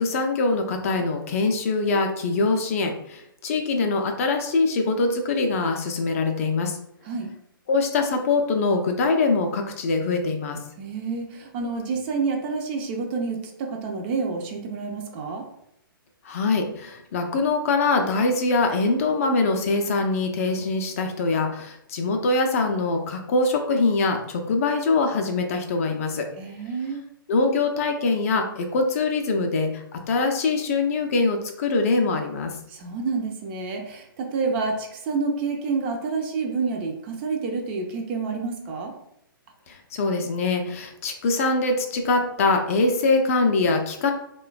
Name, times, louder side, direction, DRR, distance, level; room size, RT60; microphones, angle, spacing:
voice 1, 0.0-6.8 7.7-10.6 16.2-26.3 27.3-32.6 39.7-44.1, left 3 dB, 40° left, 4 dB, 0.4 m, -23 dB
voice 2, 10.8-15.4 26.4-27.0 32.7-38.9, right 4 dB, 30° right, 2 dB, 0.4 m, -28 dB
3.0 x 2.1 x 2.3 m, 0.77 s
figure-of-eight pair, 120°, 12 cm